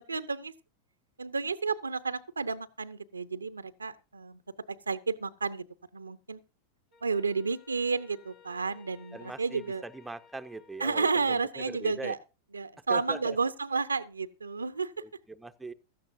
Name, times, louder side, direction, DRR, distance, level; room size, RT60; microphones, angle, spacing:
voice 1, 0.1-0.5 1.2-4.4 4.7-5.7 5.9-6.4 7.0-9.8 10.8-12.2 12.5-14.9, right 4 dB, 75° right, 0.7 m, -31 dB
Wind instrument woodwind instrument, 6.9-11.5, left 6 dB, 35° left, 2.8 m, -58 dB
voice 2, 9.1-12.1 12.9-13.4 15.0-15.7, right 2 dB, 5° right, 0.7 m, -41 dB
16.5 x 13.0 x 2.6 m
figure-of-eight pair, 90°, 0 cm